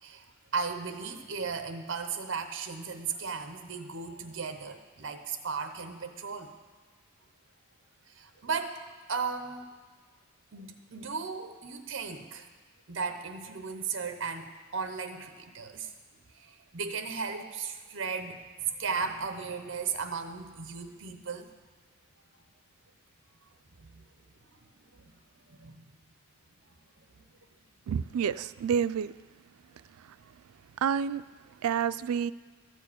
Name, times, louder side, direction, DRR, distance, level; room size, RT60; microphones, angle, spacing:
voice 1, 0.5-6.5 8.1-9.7 10.5-12.5 12.9-15.9 16.3-21.5 23.8-24.0 24.5-24.7 24.9-25.2 25.5-25.9 27.1-27.2, right 5 dB, 60° right, 7 dB, 0.8 m, -36 dB
voice 2, 27.9-29.1 30.8-31.2 31.6-32.3, right 7 dB, 90° right, 15 dB, 0.3 m, -28 dB
13.0 x 4.6 x 8.5 m, 1.3 s
head